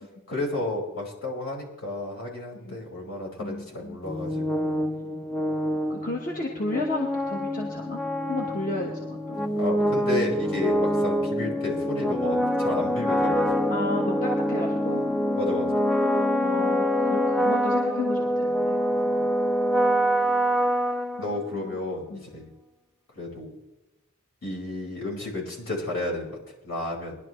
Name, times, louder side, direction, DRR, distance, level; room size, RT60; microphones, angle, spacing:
voice 1, 0.3-4.8 9.6-13.6 15.3-15.7 18.9-19.1 21.2-22.5 23.1-23.6 24.4-26.4 26.6-27.2, left 2 dB, 65° left, -3 dB, 5.3 m, -32 dB
voice 2, 3.4-4.0 5.7-9.4 13.7-15.1 16.4-18.8 19.0-19.3 21.1-21.8 22.1-22.2, left 2 dB, 40° left, -1 dB, 1.4 m, -33 dB
sound 1, 4.0-21.7, equal, ahead, 0.5 m, -25 dB
21.5 x 11.5 x 3.2 m, 0.97 s
head